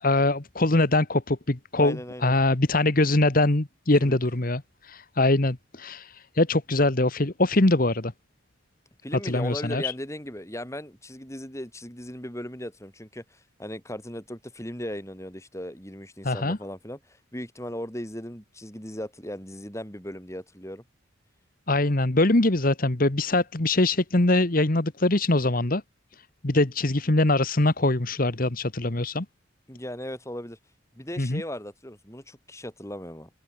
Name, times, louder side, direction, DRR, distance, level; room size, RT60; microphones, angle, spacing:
voice 1, 0.0-8.1 9.2-9.9 16.2-16.6 21.7-25.8 26.4-29.2 31.2-31.4, left 2 dB, 45° left, 1.4 m, -23 dB
voice 2, 1.8-2.3 4.0-4.2 9.0-20.8 29.7-30.6 30.9-33.3, equal, 15° left, 6.7 m, -37 dB
head